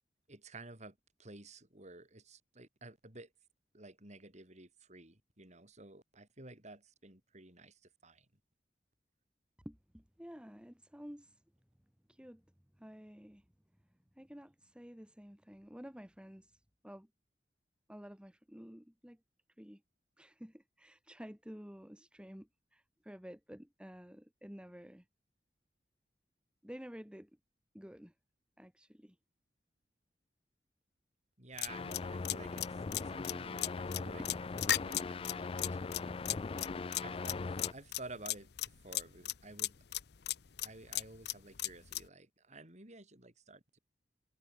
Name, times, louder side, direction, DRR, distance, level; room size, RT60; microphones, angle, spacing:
voice 1, 0.3-3.3 3.7-8.2 31.4-34.2 34.8-36.4 37.0-39.7 40.6-43.8, right 2 dB, 40° right, 6.6 m, -53 dB
voice 2, 9.7-11.4 12.1-12.4 12.8-13.4 14.2-16.6 16.8-17.1 17.9-19.2 19.6-19.8 20.2-25.0 26.6-27.3 27.7-28.1 28.6-29.2 34.2-34.3, equal, 5° right, 2.1 m, -51 dB
sound 1, 31.6-42.1, left 13 dB, 65° left, 0.7 m, -36 dB
sound 2, 31.7-37.7, left 4 dB, 30° left, 0.4 m, -40 dB
head